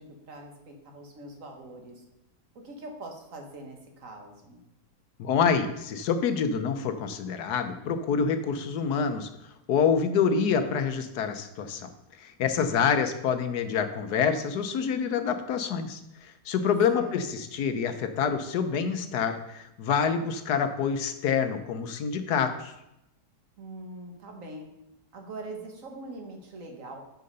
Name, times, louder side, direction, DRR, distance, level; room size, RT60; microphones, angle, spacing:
voice 1, 0.0-2.0 2.6-4.6 12.6-13.1 16.9-17.2 23.6-24.7 25.1-27.1, right 1 dB, 50° right, 2 dB, 1.8 m, -43 dB
voice 2, 5.2-9.3 9.7-11.9 12.2-22.7, left 6 dB, 70° left, 8 dB, 1.3 m, -27 dB
7.5 x 6.6 x 5.4 m, 0.87 s
omnidirectional pair, 1.8 m